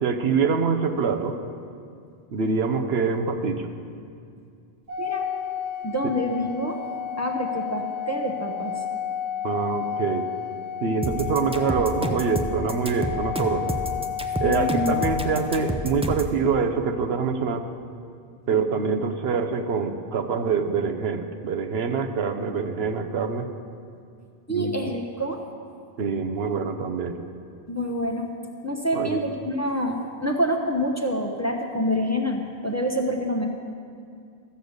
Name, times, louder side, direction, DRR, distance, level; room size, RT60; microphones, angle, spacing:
voice 1, 0.0-1.4 2.3-3.7 9.4-10.3 10.8-13.7 14.4-17.6 18.5-23.5 24.5-24.7 26.0-27.2 28.9-29.2, right 5 dB, 80° right, 6 dB, 1.0 m, -25 dB
Organ, 4.9-15.7, left 9 dB, 50° right, 1.3 m, -31 dB
voice 2, 5.0-5.3 5.8-6.8 7.2-8.8 14.4-15.0 15.3-15.4 24.5-25.4 27.7-28.4 28.6-33.5, equal, 15° left, 1 dB, 0.9 m, -27 dB
sound 1, 11.0-16.3, right 1 dB, 5° right, 0.5 m, -29 dB
13.5 x 6.8 x 7.9 m, 2.4 s
omnidirectional pair, 1.0 m